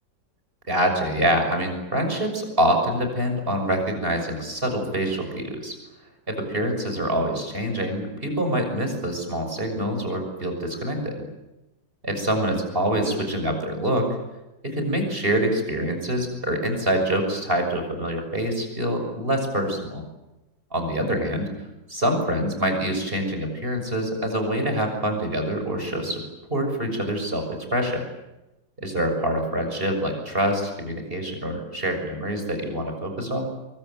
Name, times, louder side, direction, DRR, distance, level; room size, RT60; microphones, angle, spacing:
voice 1, 0.7-5.8 6.3-11.1 12.0-14.1 14.6-20.0 20.7-21.5 21.9-26.2 26.5-28.0 28.8-33.4, right 1 dB, 30° right, 5 dB, 6.7 m, -25 dB
24.5 x 23.5 x 9.3 m, 1.0 s
omnidirectional pair, 2.1 m